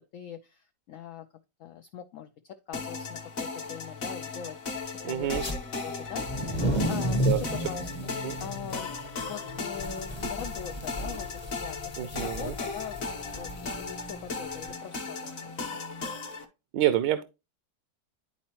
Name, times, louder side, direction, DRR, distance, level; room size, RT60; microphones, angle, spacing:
voice 1, 0.1-1.3 1.6-4.6 4.9-5.4 5.8-7.9 8.4-9.0 9.3-15.8, left 9 dB, 80° left, 8 dB, 0.7 m, -42 dB
sound 1, 2.7-16.4, left 4 dB, 45° left, 1.1 m, -37 dB
voice 2, 5.0-5.4 7.2-7.4 8.2-8.4 12.0-12.5 16.7-17.2, right 13 dB, 80° right, 11 dB, 1.2 m, -27 dB
sound 2, 5.3-5.6 6.1-14.7, equal, 20° left, 0.9 m, -33 dB
10.5 x 4.2 x 2.9 m, 0.26 s
omnidirectional pair, 2.0 m